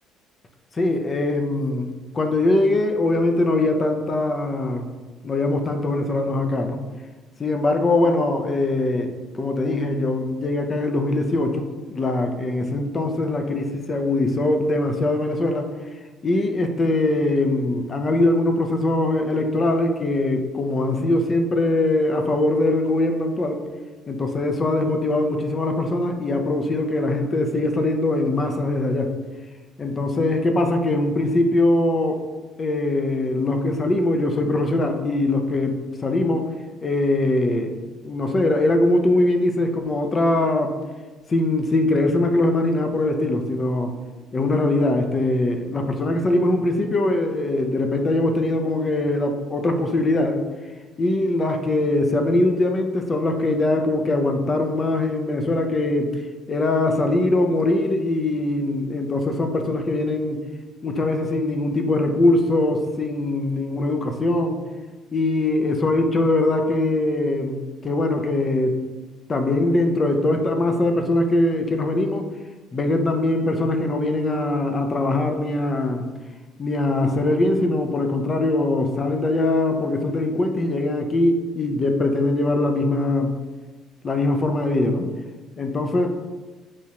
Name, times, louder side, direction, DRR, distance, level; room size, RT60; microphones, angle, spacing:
voice 1, 0.7-4.9 5.2-6.8 7.4-15.7 16.2-23.6 24.1-29.1 29.8-32.2 32.6-36.5 36.8-40.8 41.3-44.0 44.3-50.4 51.0-56.2 56.5-60.4 60.8-64.6 65.1-68.8 69.3-72.3 72.7-76.1 76.6-83.3 84.0-85.1 85.6-86.1, left 2 dB, 35° left, 5 dB, 0.4 m, -22 dB
3.0 x 2.3 x 2.8 m, 1.3 s
supercardioid pair, 85°, 0 cm